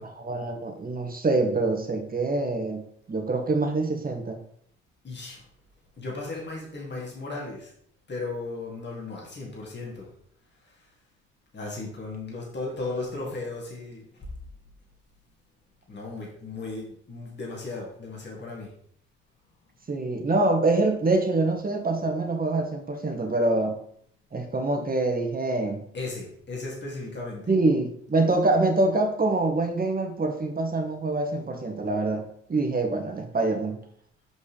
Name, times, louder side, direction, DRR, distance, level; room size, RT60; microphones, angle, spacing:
voice 1, 0.0-4.4 19.9-23.8 24.3-25.8 27.5-33.8, right 2 dB, 25° right, 4 dB, 1.5 m, -25 dB
voice 2, 5.0-5.4 6.0-7.7 8.1-10.1 10.6-10.7 11.5-14.3 15.9-18.7 25.9-27.5, left 3 dB, 35° left, -3 dB, 2.4 m, -36 dB
6.5 x 5.2 x 3.4 m, 0.64 s
hypercardioid pair, 55°, 32 cm